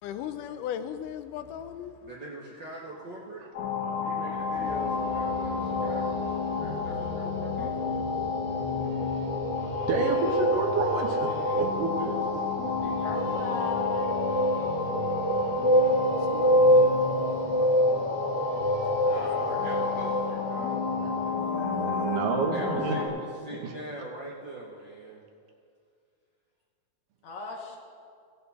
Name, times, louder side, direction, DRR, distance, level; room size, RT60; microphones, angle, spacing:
voice 1, 0.0-2.0 16.1-18.0 19.0-19.6 21.4-22.2, left 9 dB, 85° left, 2.1 m, -39 dB
voice 2, 2.0-3.5 4.0-8.0 11.3-12.1 12.8-13.4 18.8-20.9 22.4-25.2, right 1 dB, 55° right, 1.3 m, -42 dB
sound 1, 3.5-23.1, left 5 dB, 40° left, 1.3 m, -31 dB
sound 2, 4.4-21.4, equal, 25° right, 0.4 m, -28 dB
voice 3, 9.9-12.4 21.0-23.0 23.6-23.7, right 4 dB, 80° right, 2.8 m, -30 dB
voice 4, 12.8-14.3 27.2-27.8, left 4 dB, 60° left, 2.3 m, -38 dB
17.0 x 8.7 x 4.2 m
omnidirectional pair, 3.8 m